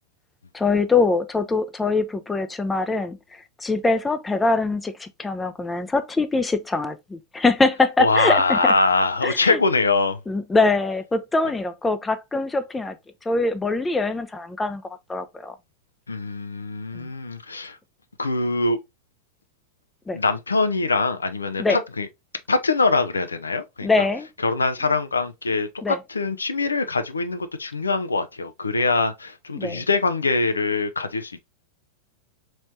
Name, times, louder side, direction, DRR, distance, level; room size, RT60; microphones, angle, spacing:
voice 1, 0.5-8.7 9.2-9.6 10.3-13.0 13.2-15.5 16.9-17.1 20.1-20.2 21.6-21.8 23.8-24.3 25.8-26.0 29.5-29.9, left 3 dB, 10° left, 0.5 m, -23 dB
voice 2, 8.0-10.2 16.1-17.8 18.2-18.8 20.1-22.1 22.5-23.9 24.4-25.7 26.1-31.5, left 3 dB, 75° left, 0.4 m, -23 dB
4.1 x 3.1 x 2.6 m
figure-of-eight pair, 90°, 0 cm